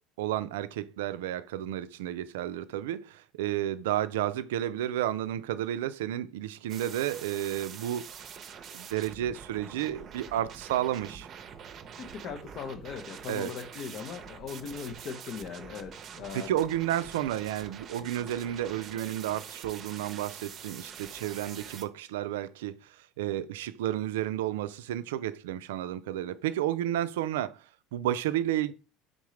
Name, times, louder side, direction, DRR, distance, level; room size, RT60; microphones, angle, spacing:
voice 1, 0.2-8.1 8.7-11.3 13.3-13.5 16.3-27.6 27.9-28.7, right 12 dB, 80° right, 0.3 m, -32 dB
sound 1, 6.7-21.9, right 7 dB, 45° right, 0.6 m, -45 dB
voice 2, 12.0-16.5, left 6 dB, 55° left, 0.6 m, -39 dB
3.7 x 3.6 x 3.1 m
hypercardioid pair, 80°, 0 cm